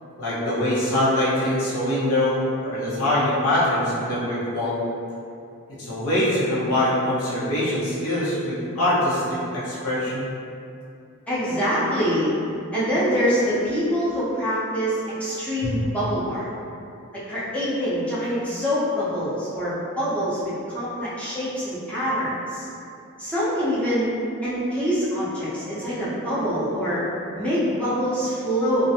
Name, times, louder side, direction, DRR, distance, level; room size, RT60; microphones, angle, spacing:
voice 1, 0.2-4.8 5.7-10.3 15.6-15.7, left 1 dB, 70° left, -10 dB, 0.7 m, -23 dB
voice 2, 11.3-12.3 12.7-16.5 17.1-22.7 23.2-24.1 24.4-27.0 27.3-28.9, equal, 5° left, -11 dB, 0.6 m, -25 dB
2.5 x 2.1 x 2.7 m, 2.5 s
head